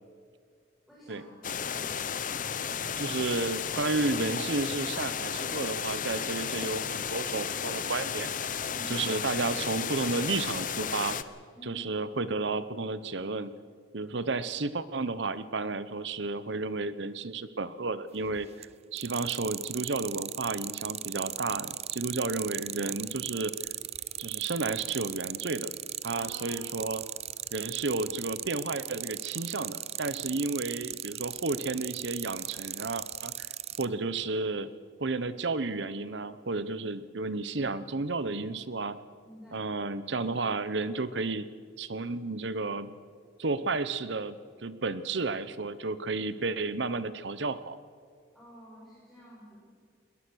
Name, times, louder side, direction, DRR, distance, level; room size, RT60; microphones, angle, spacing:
voice 1, 0.9-1.3 1.7-2.1 8.7-9.0 11.5-11.9 22.0-22.2 26.1-26.7 39.2-39.7 48.3-49.6, left 1 dB, ahead, -8 dB, 6.2 m, -49 dB
sound 1, 1.4-11.2, left 7 dB, 45° left, 0.8 m, -33 dB
voice 2, 3.0-8.3 8.9-11.2 11.7-13.5 13.9-23.5 24.2-25.7 26.0-27.0 27.5-33.5 33.8-34.7 35.0-39.0 39.5-41.5 41.8-42.9 43.4-44.4 44.6-47.8, right 3 dB, 65° right, 14 dB, 0.9 m, -32 dB
sound 2, 18.2-18.6 19.0-33.8, right 12 dB, 35° right, 0.5 m, -37 dB
21.5 x 20.5 x 6.4 m, 2.1 s
head